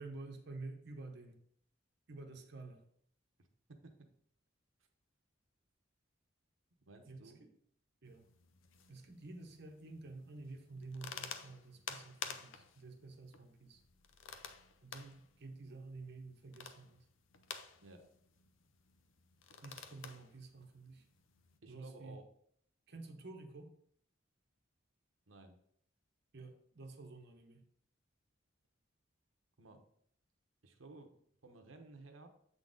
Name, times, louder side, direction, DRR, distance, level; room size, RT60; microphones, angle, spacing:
voice 1, 0.0-1.4 2.1-2.8 7.1-7.5 8.0-8.3 8.9-13.8 14.8-17.1 19.6-21.1 21.7-22.2 22.9-23.7 26.3-27.7, right 3 dB, 55° right, 4 dB, 0.9 m, -50 dB
voice 2, 3.4-4.1 6.9-7.4 17.8-18.1 21.6-22.3 25.3-25.6 29.6-29.8 30.6-32.3, right 2 dB, 90° right, 5 dB, 1.0 m, -56 dB
sound 1, 8.0-21.6, left 7 dB, 75° left, 0.6 m, -52 dB
8.2 x 3.9 x 3.8 m, 0.66 s
head